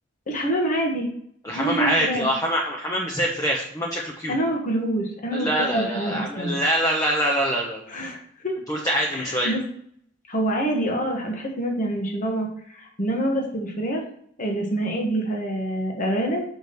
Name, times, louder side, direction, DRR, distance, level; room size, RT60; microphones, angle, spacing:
voice 1, 0.3-1.1 1.5-2.3 4.3-6.6 7.9-8.2 8.4-8.5 9.1-9.6 10.3-12.5 12.7-14.0 14.4-16.4, right 1 dB, 45° left, 1 dB, 1.6 m, -26 dB
voice 2, 1.4-4.3 5.3-7.8 8.7-9.5, equal, 20° left, -1 dB, 1.0 m, -24 dB
6.2 x 5.1 x 5.3 m, 0.66 s
head